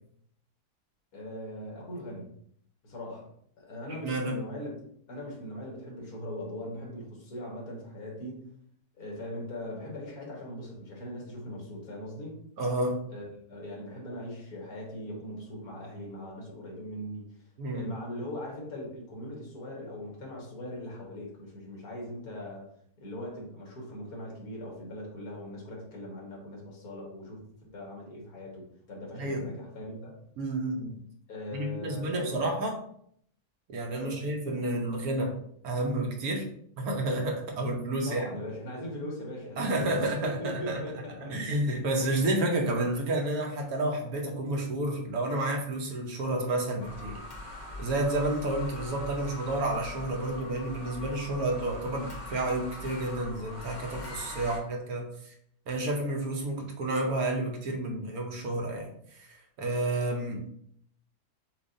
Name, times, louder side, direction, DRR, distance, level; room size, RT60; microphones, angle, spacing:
voice 1, 1.1-2.3 2.8-3.3 3.6-4.7 5.1-8.4 9.0-12.3 13.1-17.2 17.7-22.6 23.0-27.4 27.7-30.1 31.3-32.4 34.0-34.3 38.0-41.3, left 1 dB, 70° left, -2 dB, 1.9 m, -40 dB
voice 2, 4.0-4.3 12.6-13.0 17.6-17.9 29.2-29.6 30.4-31.0 31.5-32.8 33.7-35.4 35.6-36.5 36.8-38.3 39.6-40.8 41.2-47.2 47.8-55.3 55.7-60.5, right 1 dB, 70° right, 1 dB, 1.2 m, -30 dB
sound 1, 46.8-54.6, left 1 dB, 40° left, 0.8 m, -42 dB
7.1 x 2.4 x 2.6 m, 0.67 s
omnidirectional pair, 1.7 m